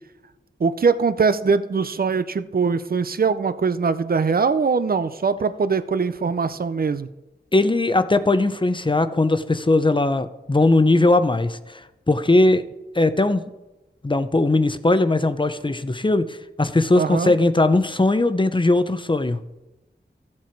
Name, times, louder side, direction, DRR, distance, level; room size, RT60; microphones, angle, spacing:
voice 1, 0.6-7.1 16.9-17.3, right 5 dB, 50° right, 13 dB, 0.6 m, -22 dB
voice 2, 7.5-11.8 12.1-12.6 12.9-13.4 14.0-19.4, left 2 dB, 25° left, 11 dB, 0.7 m, -19 dB
14.0 x 7.5 x 4.6 m, 1.0 s
wide cardioid pair, 65°, 19 cm